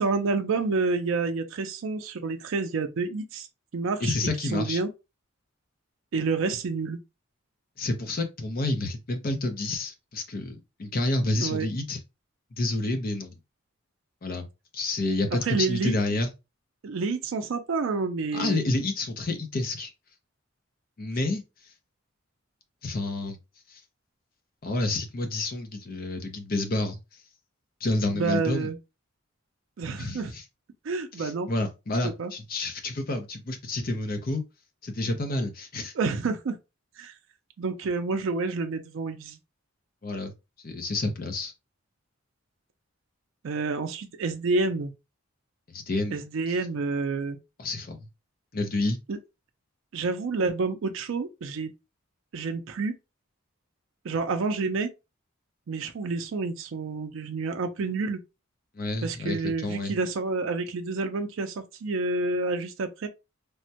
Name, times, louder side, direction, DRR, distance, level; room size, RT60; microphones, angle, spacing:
voice 1, 0.0-3.5 3.7-4.2 4.4-4.9 6.1-7.0 11.4-11.7 15.3-16.2 16.8-18.7 28.1-28.8 29.8-30.3 30.8-31.5 32.0-32.3 35.9-36.6 37.0-37.2 37.6-39.4 43.4-44.9 46.1-47.4 49.1-49.2 49.9-51.7 52.3-52.9 54.0-54.9 55.7-58.2 59.0-63.1, right 4 dB, 75° right, 0.4 m, -29 dB
voice 2, 4.0-4.8 7.8-12.0 12.6-13.3 14.2-14.5 14.7-16.3 18.3-19.9 21.0-21.4 22.8-23.4 23.7-23.8 24.6-27.0 27.8-28.7 30.0-30.4 31.2-34.4 34.8-35.9 40.0-40.3 40.6-41.5 45.7-46.2 47.6-48.1 48.5-49.0 58.7-59.9, left 2 dB, 45° left, 0.6 m, -29 dB
3.3 x 2.1 x 2.7 m
head